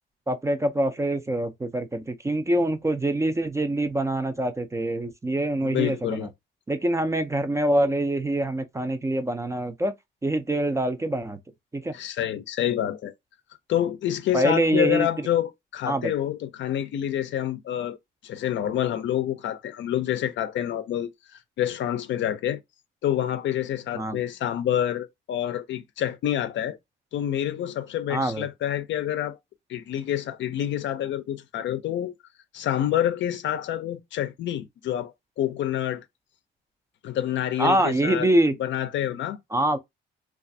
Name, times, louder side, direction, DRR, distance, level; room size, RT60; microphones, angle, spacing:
voice 1, 0.3-6.3 6.7-9.9 10.2-11.4 11.7-11.9 14.3-15.3 15.9-16.1 23.9-24.2 28.1-28.5 37.6-38.5 39.5-39.8, right 1 dB, 15° right, 0.4 m, -25 dB
voice 2, 5.6-6.3 11.9-13.1 13.7-18.0 18.2-21.1 21.6-22.6 23.0-26.8 27.1-29.4 29.7-32.1 32.5-36.0 37.0-38.3 38.6-39.4, left 11 dB, 70° left, 0.5 m, -27 dB
2.4 x 2.3 x 2.6 m
cardioid pair, 90°, 20 cm